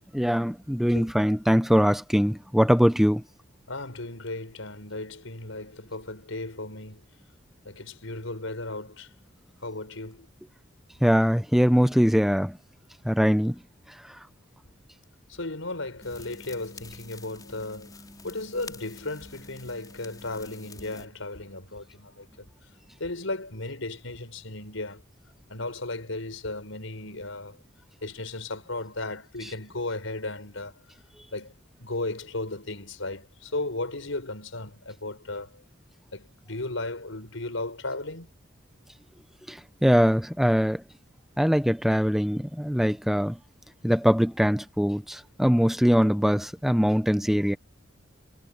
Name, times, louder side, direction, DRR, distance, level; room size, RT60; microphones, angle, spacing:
voice 1, 0.1-3.2 11.0-12.5 13.1-13.6 39.5-40.8 41.4-43.4 43.8-47.6, equal, ahead, 0.7 m, -22 dB
voice 2, 3.7-7.1 7.7-9.1 9.6-10.3 15.3-18.0 18.2-22.5 23.0-25.0 25.5-27.6 28.0-30.7 31.3-31.5 31.8-35.6 36.1-38.3, left 2 dB, 90° left, 5.3 m, -35 dB
sound 1, 16.0-21.0, left 3 dB, 20° left, 4.7 m, -47 dB
head